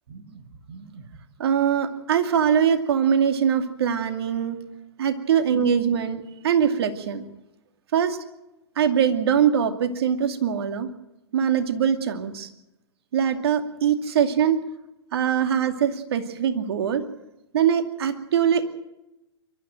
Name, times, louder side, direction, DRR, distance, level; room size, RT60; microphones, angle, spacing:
voice 1, 0.1-1.0 1.4-4.6 5.0-7.2 7.9-8.2 8.8-10.9 11.3-12.5 13.1-14.6 15.1-17.0 17.5-18.7, right 8 dB, 60° right, 7 dB, 2.5 m, -22 dB
24.0 x 13.0 x 8.9 m, 0.91 s
hypercardioid pair, 120°, 15 cm